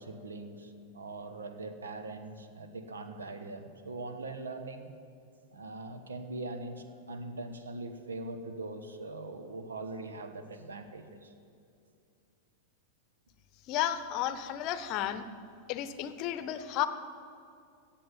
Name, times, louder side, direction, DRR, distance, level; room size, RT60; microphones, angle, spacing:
voice 1, 0.0-4.9 5.5-11.3, right 2 dB, 70° right, 9 dB, 1.2 m, -41 dB
voice 2, 13.7-15.2 15.7-16.9, left 12 dB, 40° left, 12 dB, 0.8 m, -32 dB
15.5 x 7.6 x 9.1 m, 2.4 s
figure-of-eight pair, 90°, 0 cm